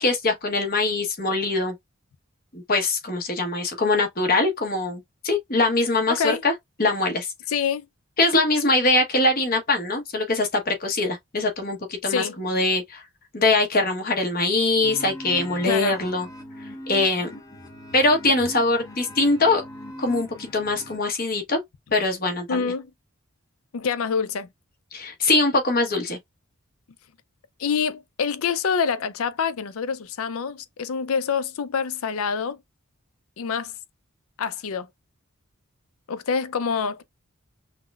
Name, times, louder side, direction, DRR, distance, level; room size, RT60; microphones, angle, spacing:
voice 1, 0.0-1.7 2.5-6.5 6.8-7.3 8.2-13.0 13.3-16.3 16.9-17.4 17.9-19.6 20.0-21.6 21.9-22.7 24.9-26.2, left 2 dB, 40° left, 1.0 m, -22 dB
voice 2, 6.1-6.4 7.5-7.9 12.1-12.4 15.7-16.0 22.5-22.9 23.7-24.5 27.6-32.6 33.4-33.7 34.4-34.9 36.1-37.0, left 6 dB, 75° left, 0.5 m, -26 dB
sound 1, 14.8-21.0, left 1 dB, 15° left, 0.6 m, -40 dB
5.7 x 2.1 x 2.3 m
head